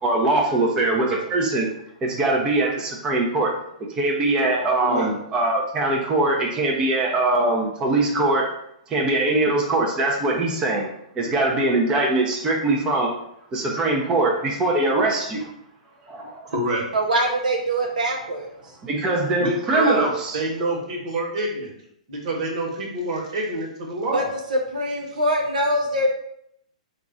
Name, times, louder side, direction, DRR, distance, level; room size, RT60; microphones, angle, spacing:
voice 1, 0.0-1.7 2.0-3.5 4.0-8.5 8.9-10.9 11.2-13.2 13.5-15.5 16.1-16.4 18.8-20.4, right 2 dB, 20° right, -1 dB, 0.7 m, -22 dB
voice 2, 4.8-5.1 16.5-16.9 19.4-21.7 22.1-24.3, right 1 dB, 55° right, -1 dB, 1.3 m, -27 dB
voice 3, 16.9-18.5 24.1-24.2 24.5-26.1, right 1 dB, 85° right, 0 dB, 0.6 m, -23 dB
3.8 x 2.4 x 3.8 m, 0.74 s
hypercardioid pair, 125°, 4 cm